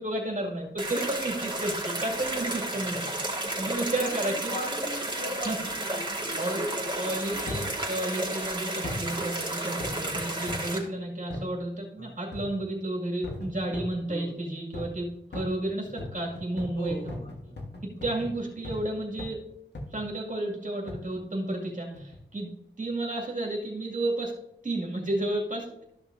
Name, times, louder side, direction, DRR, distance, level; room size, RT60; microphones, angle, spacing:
voice 1, 0.0-4.5 5.4-5.6 6.4-6.7 6.9-17.1 17.8-19.4 19.9-22.5 22.8-24.3 24.6-25.8, right 1 dB, 45° right, -1 dB, 2.2 m, -32 dB
sound 1, 0.8-10.8, right 1 dB, 25° right, 2.4 m, -32 dB
voice 2, 4.1-7.9 12.0-12.2 14.1-14.4 16.8-17.6, equal, 40° left, -3 dB, 3.1 m, -40 dB
sound 2, 7.5-7.8 8.8-9.1 9.8-10.8 11.3-11.5 12.3-12.7 13.2-14.0 14.7-15.0 15.3-18.9 19.2-19.4 19.7-20.1 20.9-21.1 21.9-22.3 22.8-22.9, left 2 dB, 70° left, 1.5 m, -39 dB
13.0 x 6.0 x 2.7 m, 0.76 s
wide cardioid pair, 80°, 19 cm